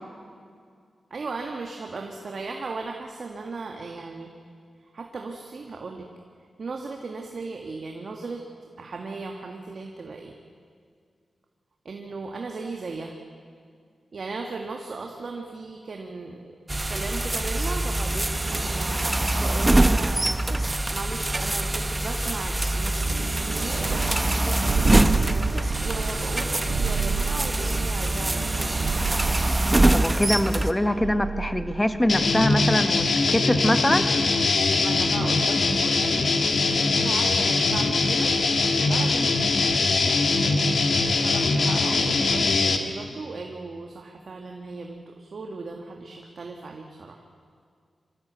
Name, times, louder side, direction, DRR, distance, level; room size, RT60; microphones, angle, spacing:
voice 1, 1.1-4.3 4.9-6.1 6.6-8.4 8.8-10.3 11.9-13.2 14.1-16.5 16.8-20.4 20.9-25.6 25.8-28.6 30.9-31.2 34.8-36.4 36.8-38.3 38.6-39.7 41.2-47.3, right 3 dB, 65° right, 2 dB, 1.9 m, -36 dB
sound 1, 16.7-30.7, right 1 dB, 20° right, 1.0 m, -24 dB
sound 2, 23.0-32.4, right 5 dB, 85° right, 1.5 m, -31 dB
voice 2, 29.9-34.1, left 1 dB, 15° left, 9 dB, 1.5 m, -24 dB
sound 3, 32.1-42.8, left 3 dB, 70° left, 1.9 m, -22 dB
25.0 x 15.5 x 8.2 m, 2.2 s
cardioid pair, 60°, 0 cm